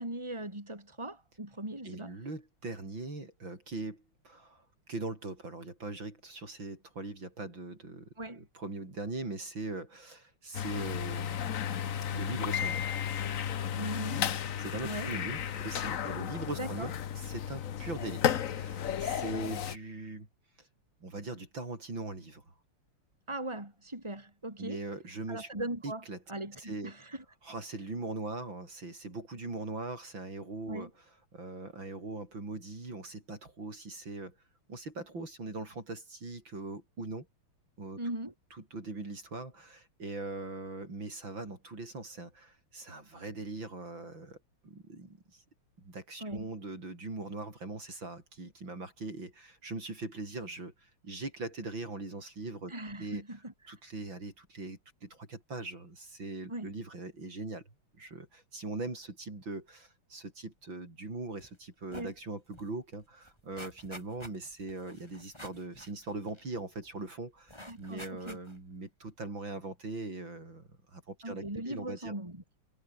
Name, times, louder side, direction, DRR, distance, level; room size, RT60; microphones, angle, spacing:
voice 1, 0.0-2.1 8.2-8.4 13.7-14.2 14.8-15.2 16.6-16.9 23.3-24.8 25.3-26.0 26.3-27.2 30.7-30.9 38.0-38.3 46.2-46.5 52.7-53.5 56.5-56.7 61.9-62.1 67.7-68.4 71.2-72.4, right 1 dB, 10° right, 5.4 m, -39 dB
voice 2, 1.8-8.1 8.4-12.8 14.6-20.3 20.6-20.7 21.0-22.5 24.6-25.5 25.8-26.2 26.6-26.9 27.4-31.1 31.3-34.4 34.7-37.3 37.8-38.0 38.5-44.4 44.6-45.4 45.8-52.7 53.0-53.2 53.7-57.6 58.0-72.1, right 2 dB, 60° right, 7.2 m, -41 dB
sound 1, 10.5-19.8, left 9 dB, 55° left, 1.0 m, -33 dB
sound 2, 61.4-61.6 61.8-62.2 62.5-62.6 62.9-66.9 67.5-68.7 69.2-69.3, left 1 dB, 10° left, 7.5 m, -50 dB
omnidirectional pair, 2.4 m